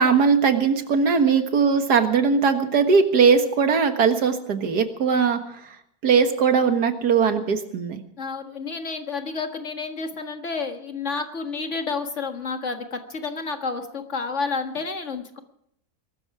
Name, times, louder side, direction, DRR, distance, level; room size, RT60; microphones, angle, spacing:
voice 1, 0.0-5.8 6.0-8.0, right 5 dB, 85° right, 7 dB, 2.1 m, -20 dB
voice 2, 8.2-15.4, left 4 dB, 50° left, 6 dB, 2.0 m, -30 dB
22.0 x 13.5 x 4.8 m, 0.74 s
omnidirectional pair, 1.7 m